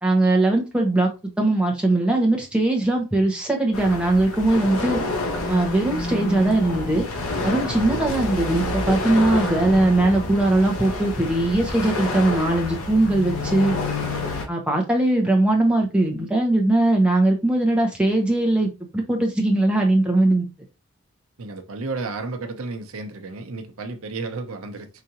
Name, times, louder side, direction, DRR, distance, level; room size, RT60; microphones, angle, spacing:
voice 1, 0.0-1.1 1.4-5.0 5.5-7.1 7.4-13.8 14.5-20.5, right 2 dB, 5° right, 0.9 m, -20 dB
sound 1, 3.7-14.5, left 2 dB, 75° left, 1.0 m, -28 dB
voice 2, 21.4-24.9, right 3 dB, 75° right, 0.8 m, -32 dB
4.9 x 2.6 x 2.8 m
head